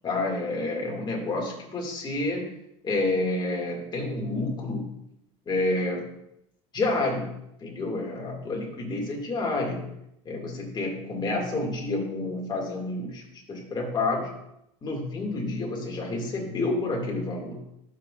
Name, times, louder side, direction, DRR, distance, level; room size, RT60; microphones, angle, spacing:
voice 1, 0.0-2.5 2.8-4.8 5.5-6.0 6.7-7.3 7.6-9.9 10.3-13.2 13.5-14.3 14.8-17.6, left 2 dB, 30° left, 0 dB, 2.1 m, -29 dB
12.0 x 5.7 x 2.4 m, 0.79 s
supercardioid pair, 125°, 16 cm